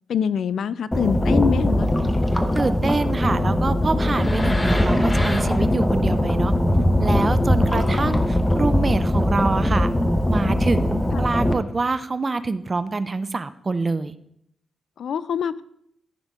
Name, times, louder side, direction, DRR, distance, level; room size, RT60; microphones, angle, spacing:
voice 1, 0.1-1.9 7.7-8.0 15.0-15.6, left 7 dB, 70° left, 16 dB, 0.3 m, -25 dB
sound 1, 0.9-11.5, left 1 dB, 10° left, 0.7 m, -20 dB
voice 2, 2.5-6.5 7.0-9.9 10.3-14.2, right 3 dB, 25° right, 13 dB, 0.4 m, -26 dB
14.0 x 5.2 x 3.6 m, 0.74 s
wide cardioid pair, 145°, 0 cm